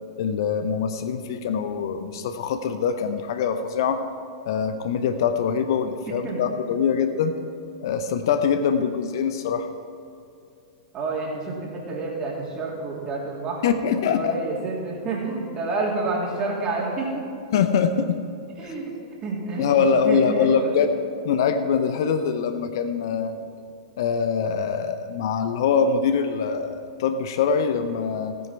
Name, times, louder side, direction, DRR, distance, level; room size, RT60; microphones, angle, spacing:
voice 1, 0.2-4.0 4.5-7.4 7.8-9.7 13.6-14.4 17.5-18.2 19.6-23.3 24.0-28.3, left 6 dB, 55° left, 8 dB, 0.8 m, -23 dB
voice 2, 10.9-13.6 14.1-17.2 18.6-19.0 19.2-20.8, right 3 dB, 30° right, -3 dB, 3.4 m, -29 dB
16.0 x 9.4 x 4.6 m, 2.6 s
figure-of-eight pair, 100°, 3 cm